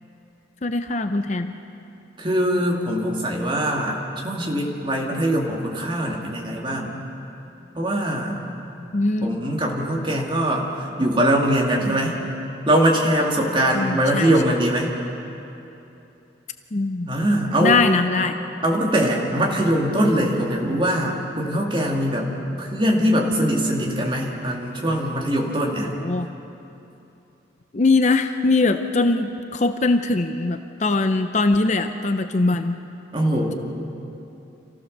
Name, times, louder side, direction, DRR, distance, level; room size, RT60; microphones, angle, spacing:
voice 1, 0.6-1.5 8.9-9.5 13.7-14.3 16.7-17.1 17.6-18.4 25.8-26.3 27.7-32.8, left 3 dB, 40° left, 8 dB, 0.6 m, -21 dB
voice 2, 2.2-4.0 4.2-6.9 7.8-8.4 9.2-10.7 11.0-12.2 12.7-14.9 17.1-17.8 18.6-22.3 22.6-25.9 33.1-33.6, right 1 dB, 25° right, -1 dB, 2.4 m, -22 dB
27.0 x 15.5 x 6.6 m, 2.9 s
head